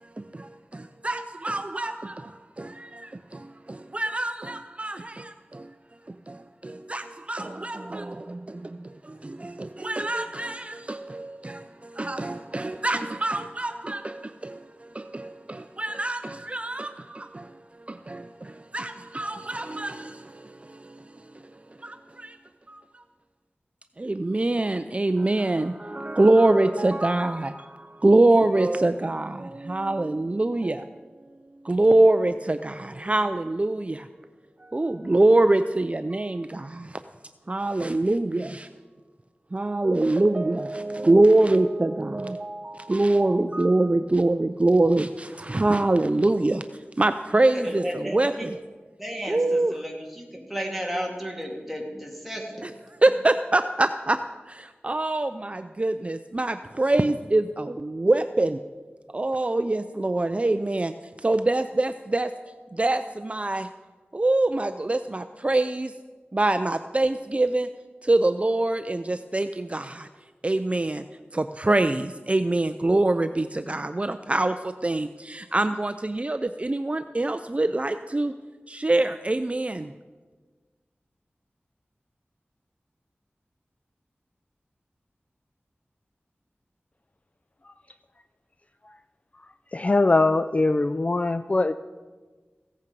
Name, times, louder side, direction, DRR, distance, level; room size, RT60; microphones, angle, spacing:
voice 1, 0.2-5.7 6.1-21.3 21.8-22.4 22.7-23.0 24.0-30.9 31.6-34.1 34.6-37.0 37.5-38.7 39.5-46.6 47.0-48.5 49.3-49.7 52.6-52.7 53.0-54.2 54.5-58.6 59.1-60.9 61.2-62.3 62.7-63.7 64.1-65.9 66.3-67.7 68.0-70.1 70.4-71.0 71.3-78.3 78.7-79.9, right 2 dB, 30° right, 10 dB, 0.4 m, -24 dB
voice 2, 47.5-48.5 49.0-52.7, equal, ahead, -1 dB, 2.5 m, -33 dB
voice 3, 89.7-91.7, left 2 dB, 35° left, 11 dB, 0.3 m, -21 dB
16.0 x 8.4 x 5.2 m, 1.4 s
wide cardioid pair, 60°, 4 cm